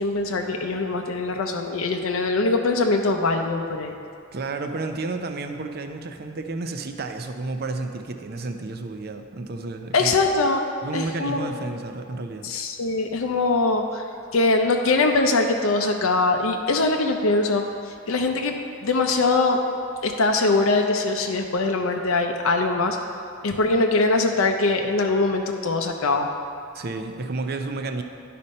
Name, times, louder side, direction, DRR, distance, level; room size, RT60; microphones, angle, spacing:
voice 1, 0.0-3.9 9.9-10.6 10.9-11.6 12.4-14.0 14.3-17.6 18.1-19.6 20.0-23.0 23.4-26.3, left 3 dB, 90° left, 3 dB, 0.6 m, -22 dB
voice 2, 4.3-10.1 10.8-12.5 26.7-28.0, right 3 dB, 50° right, 6 dB, 0.5 m, -31 dB
11.0 x 4.3 x 5.3 m, 2.4 s
head